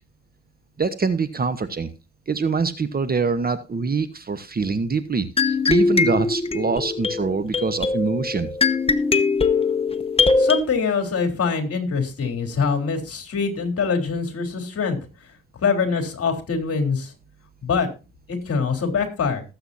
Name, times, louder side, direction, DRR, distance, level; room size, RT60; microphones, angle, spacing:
voice 1, 0.8-1.9 2.3-8.5, right 4 dB, 30° right, 12 dB, 1.2 m, -24 dB
sound 1, 5.4-10.6, left 4 dB, 20° left, 1.0 m, -21 dB
voice 2, 10.4-15.0 15.6-17.1 17.6-17.9 18.3-19.4, left 5 dB, 50° left, 4 dB, 3.8 m, -24 dB
19.0 x 8.0 x 2.7 m, 0.30 s
cardioid pair, 90°, 30 cm